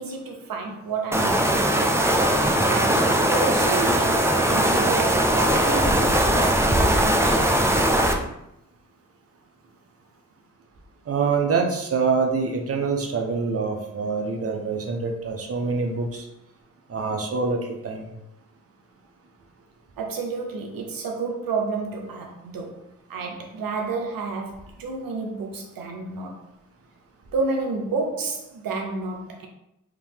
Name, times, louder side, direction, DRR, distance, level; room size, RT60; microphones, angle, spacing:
voice 1, 0.0-2.1 2.6-7.7 20.0-22.8 23.1-26.4 27.3-29.5, right 4 dB, 80° right, 0.6 m, -30 dB
sound 1, 1.1-8.1, right 1 dB, 10° right, 0.5 m, -20 dB
voice 2, 11.1-16.3 16.9-18.1, right 4 dB, 45° right, 0.7 m, -25 dB
3.7 x 2.7 x 3.5 m
cardioid pair, 60°, 34 cm